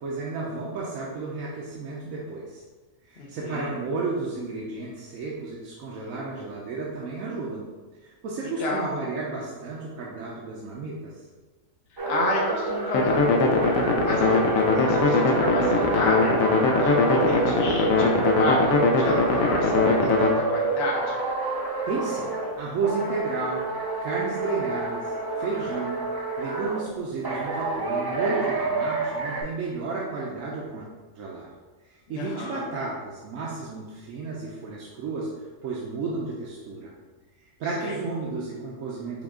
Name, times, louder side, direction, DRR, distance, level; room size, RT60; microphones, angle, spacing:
voice 1, 0.0-2.6 3.0-7.7 8.0-11.2 21.9-23.6 24.0-26.0 26.4-30.8 31.1-31.5 31.8-35.3 35.6-36.9 37.4-39.2, right 4 dB, 80° right, -4 dB, 1.0 m, -32 dB
voice 2, 3.2-3.8 8.4-8.9 11.9-16.4 16.8-21.1 32.1-32.7 37.8-37.9, left 2 dB, 55° left, -3 dB, 0.8 m, -31 dB
sound 1, 12.0-22.5 22.8-26.8 27.2-29.4, right 3 dB, 25° right, 0.5 m, -28 dB
sound 2, 12.9-20.3, left 3 dB, 80° left, 1.1 m, -21 dB
6.0 x 2.3 x 3.6 m, 1.3 s
omnidirectional pair, 1.4 m